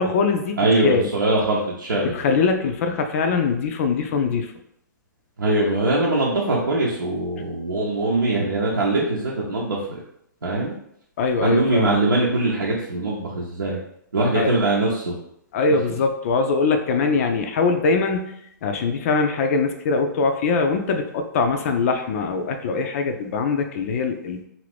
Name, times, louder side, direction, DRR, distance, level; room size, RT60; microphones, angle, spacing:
voice 1, 0.0-1.1 2.0-4.5 11.2-12.0 14.4-14.5 15.5-18.3 18.6-24.4, left 4 dB, 45° left, 5 dB, 0.4 m, -22 dB
voice 2, 0.6-2.1 5.4-10.0 10.4-10.7 11.4-13.8 14.1-15.2, right 2 dB, 85° right, -5 dB, 0.6 m, -22 dB
2.6 x 2.6 x 3.3 m, 0.74 s
hypercardioid pair, 125°, 11 cm